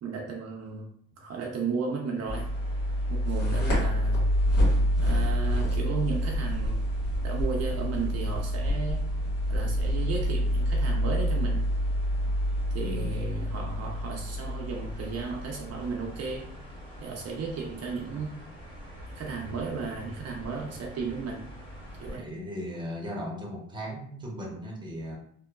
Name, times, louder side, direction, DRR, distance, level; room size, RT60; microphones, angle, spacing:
voice 1, 0.0-2.5 3.1-4.2 5.0-6.8 7.2-9.0 9.5-11.7 12.7-16.5 17.0-18.4 19.1-21.5 22.0-22.2, right 4 dB, 55° right, 0 dB, 0.5 m, -34 dB
sound 1, 2.3-22.2, equal, 15° left, 1.2 m, -30 dB
sound 2, 3.2-16.7, equal, 80° left, 1.4 m, -36 dB
voice 2, 12.8-13.2 22.1-25.2, equal, 15° right, -1 dB, 0.7 m, -37 dB
2.9 x 2.1 x 2.2 m, 0.64 s
cardioid pair, 90°, 30 cm